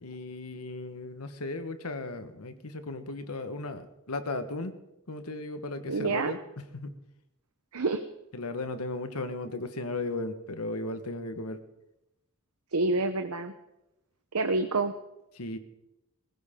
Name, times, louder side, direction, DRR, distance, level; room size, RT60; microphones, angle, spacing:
voice 1, 0.0-4.7 5.1-7.0 8.3-11.6 15.4-15.6, left 2 dB, 85° left, 9 dB, 1.5 m, -36 dB
voice 2, 5.9-6.3 7.7-8.0 12.7-13.5 14.3-14.9, right 3 dB, 85° right, 8 dB, 0.9 m, -27 dB
21.5 x 15.5 x 3.8 m, 0.89 s
head